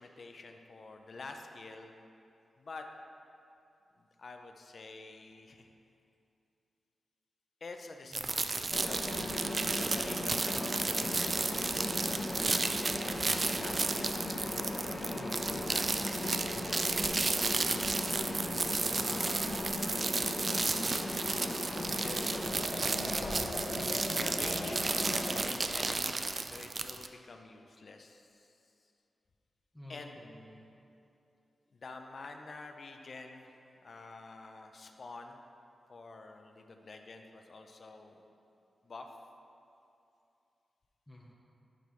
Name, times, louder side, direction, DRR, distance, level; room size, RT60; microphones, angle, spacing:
voice 1, 0.0-1.9 2.6-2.9 4.0-5.7 7.6-9.4 9.7-14.2 14.7-15.9 16.2-16.8 17.3-17.5 19.0-19.7 22.0-22.3 23.9-28.5 29.9-30.1 31.7-33.5 33.8-35.4 35.9-38.2 38.8-39.1, left 3 dB, 50° left, 4 dB, 0.5 m, -48 dB
voice 2, 8.1-8.6 15.1-15.7 18.9-19.6 29.7-30.6 41.1-41.3, left 1 dB, 10° left, -3 dB, 0.7 m, -52 dB
sound 1, 8.1-27.1, right 3 dB, 40° right, 0.3 m, -33 dB
Mechanisms, 8.7-25.4, left 1 dB, 35° left, 1.0 m, -37 dB
10.5 x 5.3 x 3.1 m, 2.7 s
wide cardioid pair, 115°, 0 cm